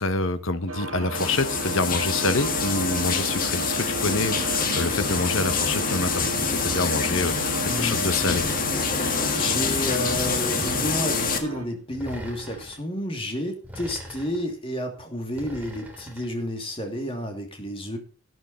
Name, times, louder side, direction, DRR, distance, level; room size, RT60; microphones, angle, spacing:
voice 1, 0.0-8.4, left 3 dB, 60° left, 11 dB, 1.2 m, -27 dB
sound 1, 0.7-11.7, right 2 dB, 85° right, 2.2 m, -34 dB
sound 2, 1.1-11.4, left 5 dB, 40° left, 1.8 m, -26 dB
voice 2, 7.7-8.1 9.3-18.0, equal, 25° left, 3 dB, 2.7 m, -30 dB
sound 3, 8.2-9.1 10.0-10.9 11.9-12.8 13.6-14.5 15.3-16.3, equal, 5° right, 3.4 m, -40 dB
12.0 x 10.5 x 4.3 m, 0.36 s
head